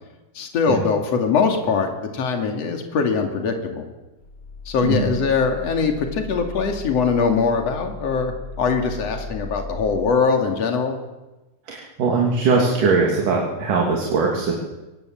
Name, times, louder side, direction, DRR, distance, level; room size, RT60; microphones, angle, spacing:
voice 1, 0.4-3.9 4.7-11.0, left 5 dB, 50° left, 3 dB, 3.5 m, -22 dB
sound 1, 4.2-10.1, left 3 dB, 35° left, 3.5 m, -37 dB
voice 2, 11.7-14.5, right 4 dB, 75° right, -1 dB, 4.5 m, -20 dB
24.0 x 20.5 x 7.8 m, 1.1 s
omnidirectional pair, 3.7 m